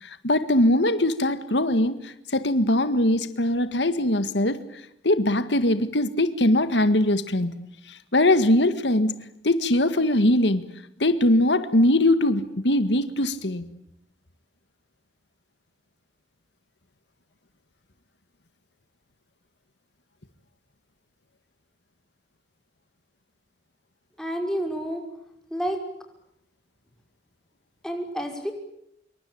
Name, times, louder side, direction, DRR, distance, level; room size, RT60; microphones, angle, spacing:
voice 1, 0.0-4.6 5.0-7.6 7.9-9.1 9.4-10.7 11.0-13.6, left 1 dB, 80° left, 11 dB, 1.8 m, -21 dB
voice 2, 24.2-25.0 25.5-25.8 27.8-28.5, equal, 5° left, 3 dB, 5.7 m, -29 dB
27.0 x 24.0 x 8.7 m, 0.78 s
head